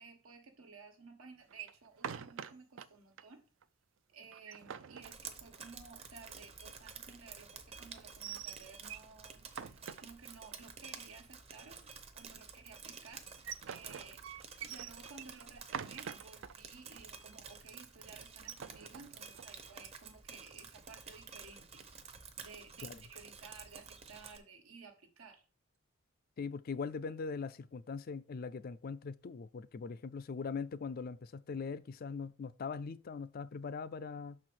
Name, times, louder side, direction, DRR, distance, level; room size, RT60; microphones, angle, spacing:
voice 1, 0.0-3.4 4.1-13.3 13.7-21.9 22.4-25.4, right 4 dB, 85° right, 1.4 m, -55 dB
sound 1, 1.5-2.9 3.2-3.3 3.6-3.7 4.2-5.7 8.0-9.1 9.5-10.5 13.1-16.5 17.0-17.1 17.3-17.7 18.3-19.5, right 8 dB, 65° right, 0.4 m, -45 dB
Drip, 5.0-24.4, right 6 dB, 30° right, 0.7 m, -51 dB
voice 2, 26.4-34.4, left 5 dB, 45° left, 0.3 m, -41 dB
6.1 x 4.4 x 6.3 m
head